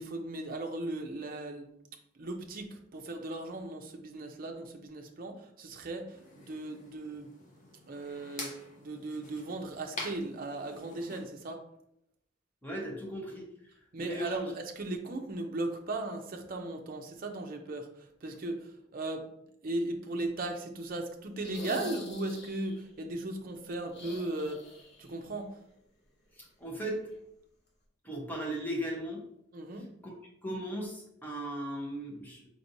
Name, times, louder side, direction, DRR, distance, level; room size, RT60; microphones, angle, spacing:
voice 1, 0.0-1.7 2.1-7.3 7.9-11.6 13.9-17.9 18.2-19.3 19.6-25.6 29.5-29.9, right 2 dB, 45° right, 3 dB, 0.6 m, -37 dB
sound 1, 6.1-11.2, left 2 dB, 40° left, 0.8 m, -46 dB
voice 2, 12.6-13.7 14.0-14.5 26.4-27.0 28.0-29.2 30.0-30.1 30.4-32.5, equal, 10° left, -2 dB, 0.9 m, -37 dB
sound 2, 21.4-22.8 23.9-25.1 25.3-25.4 27.1-27.2, left 1 dB, 60° left, 0.9 m, -44 dB
5.1 x 3.2 x 2.6 m, 0.75 s
head